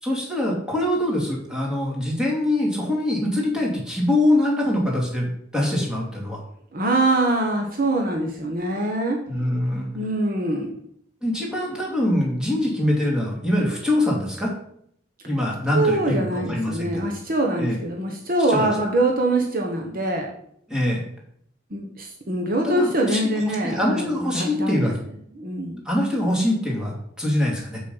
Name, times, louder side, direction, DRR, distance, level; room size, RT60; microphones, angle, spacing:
voice 1, 0.0-6.4 9.3-9.9 11.2-14.5 15.2-17.1 17.6-17.8 18.5-18.7 20.7-21.0 22.6-23.2 23.5-25.0 25.8-27.8, left 1 dB, 5° right, -3 dB, 2.8 m, -23 dB
voice 2, 6.7-9.2 9.9-10.7 15.7-20.3 21.7-24.9 25.4-25.8, right 2 dB, 45° right, 1 dB, 1.3 m, -24 dB
7.6 x 6.9 x 5.6 m, 0.66 s
head